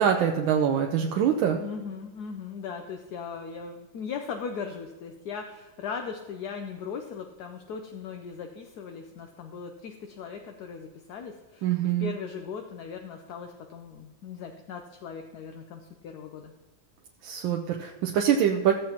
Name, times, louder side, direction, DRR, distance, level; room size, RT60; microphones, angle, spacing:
voice 1, 0.0-1.6 11.6-12.1 17.2-18.7, right 9 dB, 90° right, 2 dB, 1.5 m, -24 dB
voice 2, 1.5-16.5, left 6 dB, 65° left, 4 dB, 1.1 m, -38 dB
15.0 x 7.7 x 2.9 m, 1.3 s
omnidirectional pair, 2.1 m